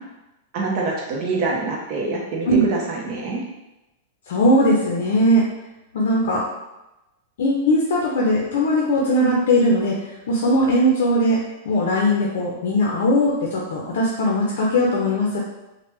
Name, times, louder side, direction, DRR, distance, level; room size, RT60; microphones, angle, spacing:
voice 1, 0.5-3.4, right 3 dB, 35° right, -2 dB, 0.7 m, -25 dB
voice 2, 4.3-5.5 5.9-6.4 7.4-15.4, equal, 65° left, -3 dB, 0.5 m, -19 dB
3.2 x 2.1 x 3.1 m, 0.97 s
supercardioid pair, 170°, 0 cm